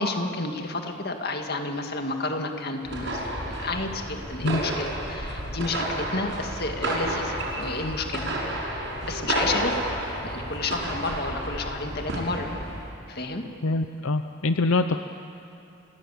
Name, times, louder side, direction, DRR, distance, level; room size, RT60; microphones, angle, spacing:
voice 1, 0.0-8.3 8.6-9.8 10.2-12.5 13.1-13.4, left 2 dB, 50° left, 4 dB, 2.1 m, -31 dB
sound 1, 2.8-12.9, right 1 dB, 60° right, 6.2 m, -31 dB
voice 2, 13.6-15.0, left 2 dB, 75° left, 8 dB, 0.7 m, -24 dB
29.5 x 17.0 x 8.5 m, 2.7 s
head